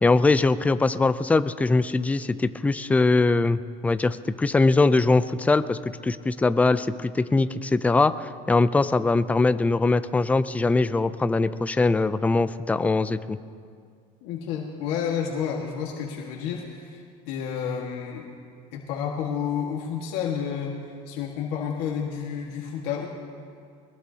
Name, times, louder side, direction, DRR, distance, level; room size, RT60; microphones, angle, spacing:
voice 1, 0.0-13.4, left 3 dB, 10° left, 13 dB, 0.4 m, -22 dB
voice 2, 14.2-18.2 18.7-23.1, left 7 dB, 80° left, -1 dB, 1.7 m, -30 dB
22.0 x 19.5 x 2.8 m, 2.2 s
cardioid pair, 140°, 17 cm